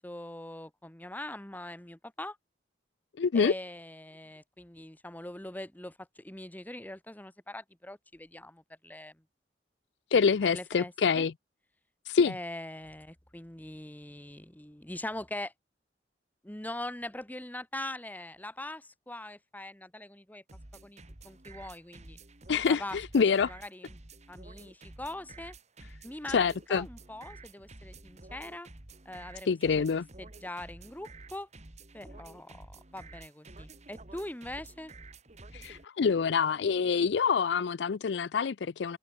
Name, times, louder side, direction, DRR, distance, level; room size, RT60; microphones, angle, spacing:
voice 1, 0.0-2.4 3.3-9.2 10.4-11.3 12.2-15.5 16.4-20.4 20.8-22.2 22.7-23.9 24.3-25.5 26.0-28.7 29.0-29.9 30.2-31.5 31.9-34.9, left 1 dB, 10° left, 1.4 m, -42 dB
voice 2, 3.2-3.5 10.1-11.3 12.1-12.3 22.5-23.5 26.3-26.9 29.5-30.1 35.5-39.0, left 5 dB, 75° left, 0.5 m, -26 dB
sound 1, 20.5-35.8, right 2 dB, 40° right, 1.9 m, -50 dB
head